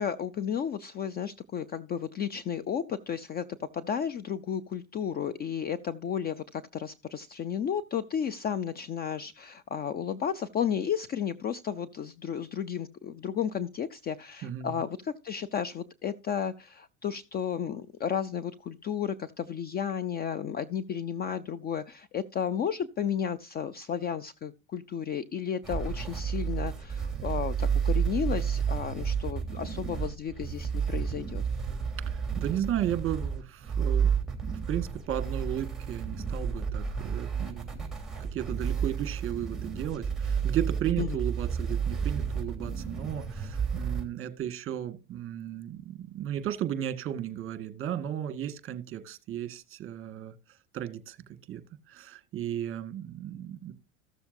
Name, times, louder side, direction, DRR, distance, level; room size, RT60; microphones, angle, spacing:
voice 1, 0.0-31.4 41.0-41.2, left 8 dB, 25° left, 0.4 m, -33 dB
voice 2, 14.4-14.8 32.1-34.1 34.5-37.9 38.2-50.3 50.7-51.2 51.5-51.6 51.9-53.7, right 11 dB, 30° right, 1.6 m, -34 dB
sound 1, 25.6-44.0, right 7 dB, ahead, 3.0 m, -31 dB
14.5 x 7.0 x 2.6 m
supercardioid pair, 105°, 40 cm